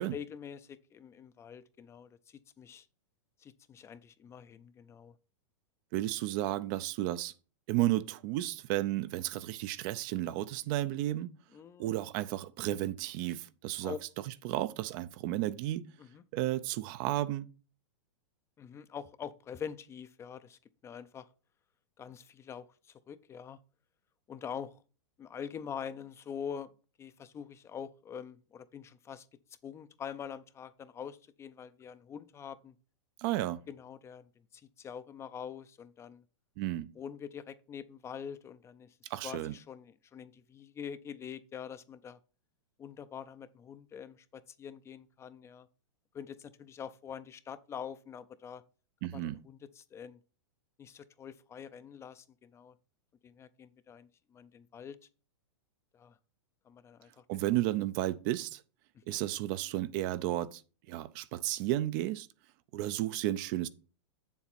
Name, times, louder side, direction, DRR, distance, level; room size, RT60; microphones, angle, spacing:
voice 1, 0.0-2.9 3.4-5.2 11.5-11.9 13.8-14.0 16.0-16.2 18.6-21.3 22.0-23.6 24.3-24.8 25.2-26.7 27.0-29.3 29.6-32.7 33.7-36.2 36.9-39.0 39.2-42.2 42.8-45.7 46.1-48.6 49.1-50.2 50.8-52.7 53.2-55.0 55.9-56.2 56.6-57.5 58.9-59.2, left 7 dB, 20° left, 0.5 m, -45 dB
voice 2, 5.9-7.3 7.7-11.3 11.8-13.9 14.4-15.9 16.3-17.5 33.2-33.6 36.6-36.9 39.1-39.5 49.0-49.4 57.3-58.6 59.1-60.6 60.9-62.3 62.7-63.7, right 15 dB, 45° right, 0.5 m, -33 dB
7.9 x 7.2 x 4.2 m
hypercardioid pair, 135°, 15 cm